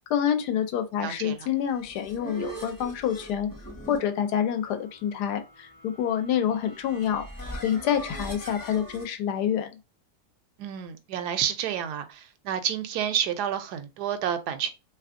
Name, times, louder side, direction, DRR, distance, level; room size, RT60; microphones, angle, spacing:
voice 1, 0.1-3.5 3.9-7.2 7.5-9.7, left 9 dB, 90° left, 1.2 m, -27 dB
voice 2, 1.0-1.5 10.6-14.7, right 9 dB, 80° right, 1.1 m, -30 dB
sound 1, 1.5-9.1, equal, 20° left, 0.5 m, -41 dB
3.3 x 2.9 x 2.5 m
omnidirectional pair, 1.7 m